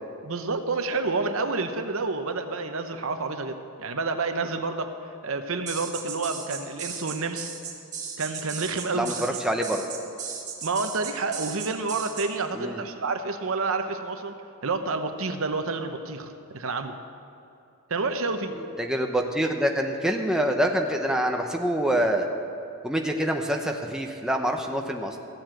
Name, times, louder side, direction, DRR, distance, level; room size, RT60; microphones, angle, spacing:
voice 1, 0.2-4.9 5.2-7.5 8.2-9.4 10.6-14.3 14.6-17.0 17.9-18.6, right 3 dB, 65° right, 7 dB, 0.8 m, -29 dB
sound 1, 5.7-12.3, right 6 dB, 30° right, 1.5 m, -36 dB
voice 2, 8.9-9.8 12.5-12.8 18.8-22.3 22.8-25.2, right 1 dB, 5° right, 2 dB, 0.7 m, -26 dB
15.0 x 7.5 x 7.7 m, 2.7 s
head